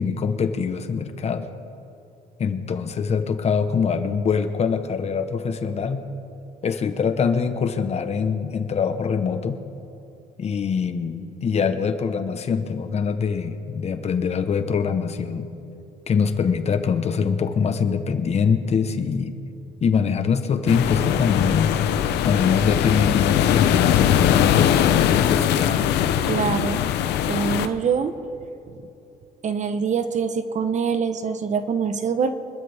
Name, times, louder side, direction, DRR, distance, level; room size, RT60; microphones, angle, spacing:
voice 1, 0.0-1.5 2.4-6.0 6.6-9.6 10.4-15.5 16.1-19.4 19.8-21.7 22.3-25.9, left 6 dB, 40° left, 9 dB, 1.0 m, -24 dB
sound 1, 20.7-27.7, left 10 dB, 80° left, 0.8 m, -20 dB
voice 2, 26.3-26.8 27.3-28.1 29.4-32.3, right 6 dB, 45° right, 9 dB, 1.0 m, -24 dB
25.0 x 13.0 x 3.5 m, 2.9 s
cardioid pair, 110°, 17 cm